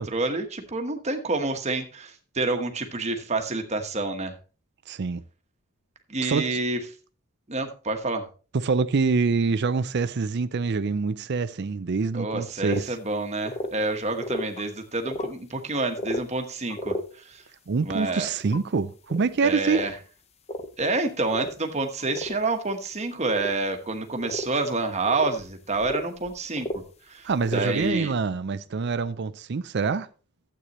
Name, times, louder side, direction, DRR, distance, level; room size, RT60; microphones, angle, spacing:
voice 1, 0.0-4.3 6.1-6.8 7.5-8.3 12.1-17.4 17.8-18.3 19.4-19.9 20.8-28.1, right 3 dB, 30° right, 1.2 m, -28 dB
voice 2, 4.9-5.2 6.2-6.5 8.5-13.0 17.7-19.8 27.2-30.1, right 4 dB, 50° right, 0.4 m, -25 dB
sound 1, 12.7-12.8 13.1-13.2 13.5-14.6 14.9-15.3 15.7-16.3 16.7-17.0 18.0-18.6 19.1-19.3 19.7-19.9 20.5-20.9 21.2-21.5 22.0-22.6 23.3-23.5 23.8-23.9 24.2-24.8 25.1-26.8 27.3-27.9, left 1 dB, 30° left, 0.6 m, -33 dB
12.5 x 8.3 x 3.0 m
head